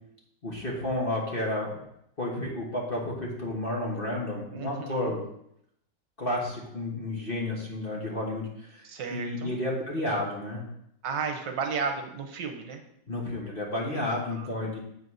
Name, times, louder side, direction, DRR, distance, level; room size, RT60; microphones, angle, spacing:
voice 1, 0.4-1.8 2.2-5.2 6.2-10.6 13.1-14.8, left 1 dB, 30° left, -2 dB, 1.4 m, -31 dB
voice 2, 4.5-5.2 8.8-9.5 11.0-12.8 14.1-14.5, right 5 dB, 65° right, 4 dB, 1.5 m, -34 dB
8.2 x 4.0 x 6.2 m, 0.75 s
omnidirectional pair, 2.2 m